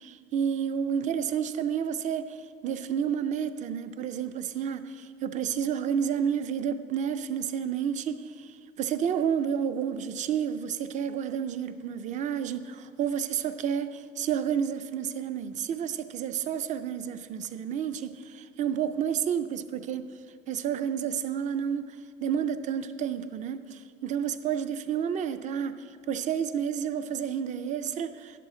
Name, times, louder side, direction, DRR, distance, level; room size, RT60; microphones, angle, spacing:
voice 1, 0.0-2.4 2.6-20.1 20.5-22.0 22.2-28.4, right 8 dB, 35° right, 0.4 m, -30 dB
12.0 x 11.5 x 3.8 m
cardioid pair, 160°, 20 cm